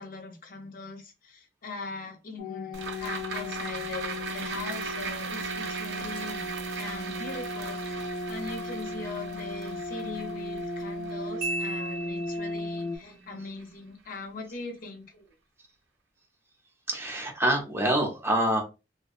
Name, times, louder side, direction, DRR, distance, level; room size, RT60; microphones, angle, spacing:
voice 1, 0.0-15.3, left 3 dB, 55° left, 4 dB, 0.7 m, -41 dB
sound 1, 2.4-13.0, left 1 dB, 85° left, 0.4 m, -36 dB
sound 2, 2.7-13.2 13.6-13.7, right 5 dB, 80° right, 0.4 m, -39 dB
Marimba xylophone, 11.4-12.8, right 1 dB, 60° right, 0.9 m, -35 dB
voice 2, 16.9-18.6, right 1 dB, 15° right, 1 dB, 0.6 m, -26 dB
2.6 x 2.2 x 2.4 m, 0.28 s
head